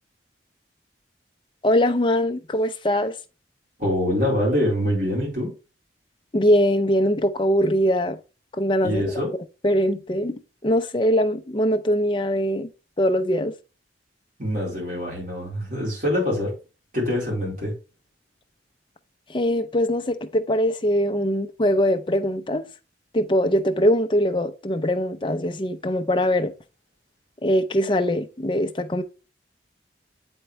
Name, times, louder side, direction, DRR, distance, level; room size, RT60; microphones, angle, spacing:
voice 1, 1.6-3.2 6.3-8.2 8.6-9.0 9.6-12.7 13.0-13.5 19.3-22.7 23.1-26.5 27.4-29.0, equal, 25° left, 0.6 m, -22 dB
voice 2, 3.8-5.5 8.8-9.3 14.4-16.5 16.9-17.7, left 1 dB, 45° right, 4.0 m, -24 dB
8.1 x 4.5 x 3.1 m
head